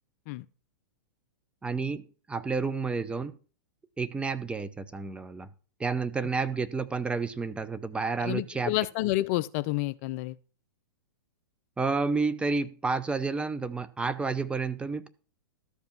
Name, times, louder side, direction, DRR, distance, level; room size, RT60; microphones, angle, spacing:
voice 1, 1.6-3.4 4.0-5.5 5.8-8.7 11.8-15.1, right 4 dB, 10° right, 0.6 m, -30 dB
voice 2, 8.2-10.4, left 17 dB, 45° left, 0.4 m, -29 dB
13.0 x 5.3 x 5.9 m
hypercardioid pair, 120°, 12 cm